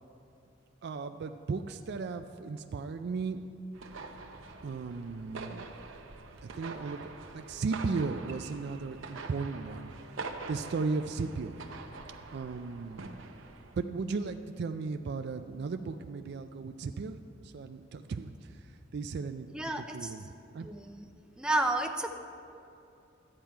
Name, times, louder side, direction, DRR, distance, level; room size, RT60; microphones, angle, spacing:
voice 1, 0.8-3.4 4.6-5.7 6.4-9.9 10.2-11.6 12.3-13.2 13.8-19.5 19.8-20.7, right 4 dB, 55° right, 7 dB, 0.4 m, -36 dB
sound 1, 3.7-13.8, right 3 dB, 80° right, 0.8 m, -45 dB
voice 2, 19.5-20.1 20.6-21.1 21.4-22.1, right 2 dB, 5° right, 4 dB, 0.5 m, -31 dB
12.0 x 8.8 x 4.5 m, 2.7 s
head